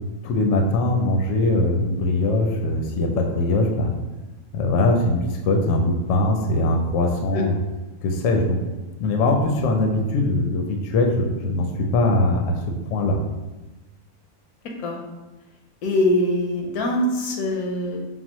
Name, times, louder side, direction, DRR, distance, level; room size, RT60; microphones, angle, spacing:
voice 1, 0.2-3.9 4.5-7.6 8.0-8.6 9.0-12.5 12.9-13.2, left 2 dB, 70° left, 2 dB, 0.9 m, -21 dB
voice 2, 15.8-18.0, left 1 dB, 85° left, 1 dB, 1.2 m, -23 dB
5.8 x 2.1 x 3.0 m, 1.1 s
omnidirectional pair, 1.6 m